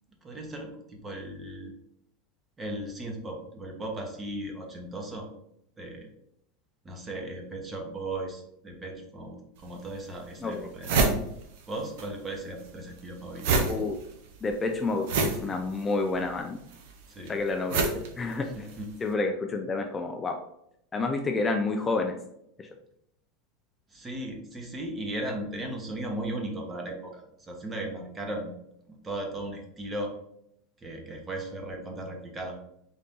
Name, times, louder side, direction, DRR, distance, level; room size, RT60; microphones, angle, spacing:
voice 1, 0.2-1.7 2.6-5.3 5.8-6.1 6.8-11.1 11.7-13.5 17.1-17.4 18.5-18.9 23.9-28.5 28.9-30.1 30.8-32.6, right 1 dB, 20° right, 2 dB, 0.9 m, -37 dB
sound 1, 9.6-9.7 10.2-10.3 10.5-12.1 12.3-18.9, right 3 dB, 70° right, 0.7 m, -28 dB
voice 2, 13.7-14.0 14.4-16.6 17.3-18.7 19.0-20.4 20.9-22.2 22.6-22.7, left 3 dB, 20° left, 4 dB, 0.4 m, -29 dB
3.9 x 2.7 x 3.6 m, 0.75 s
supercardioid pair, 120°, 0 cm